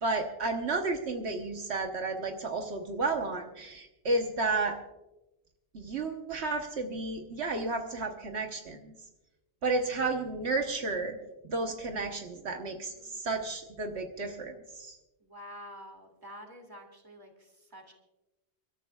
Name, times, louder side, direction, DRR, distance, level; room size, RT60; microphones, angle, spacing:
voice 1, 0.0-4.8 5.7-8.9 9.6-11.2 11.4-15.0, right 3 dB, 75° right, 4 dB, 1.4 m, -32 dB
voice 2, 12.2-13.3 15.2-17.9, equal, 20° right, 3 dB, 2.4 m, -49 dB
29.5 x 13.0 x 2.4 m, 1.0 s
omnidirectional pair, 1.1 m